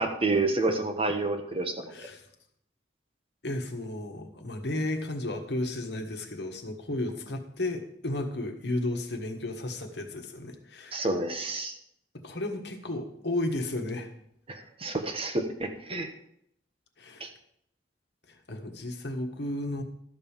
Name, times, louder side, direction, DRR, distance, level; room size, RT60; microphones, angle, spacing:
voice 1, 0.0-2.1 10.9-11.8 14.5-16.1 17.2-17.3, right 2 dB, 30° right, 4 dB, 1.3 m, -29 dB
voice 2, 1.9-2.2 3.4-11.1 12.1-14.1 17.0-17.3 18.3-19.8, left 1 dB, 65° left, 4 dB, 1.5 m, -33 dB
13.0 x 5.4 x 7.2 m, 0.72 s
head